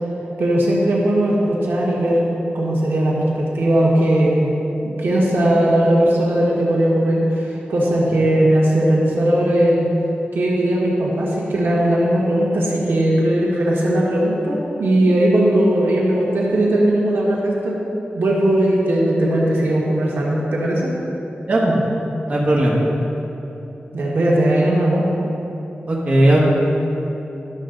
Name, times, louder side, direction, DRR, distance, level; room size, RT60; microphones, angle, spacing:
voice 1, 0.4-2.2 2.5-4.5 4.8-9.9 10.3-17.8 18.1-20.9 23.9-25.0, right 1 dB, 90° right, -4 dB, 1.6 m, -18 dB
voice 2, 22.3-22.8 25.9-26.4, right 1 dB, 40° right, -4 dB, 1.4 m, -16 dB
11.5 x 6.9 x 3.9 m, 3.0 s
wide cardioid pair, 125°, 4 cm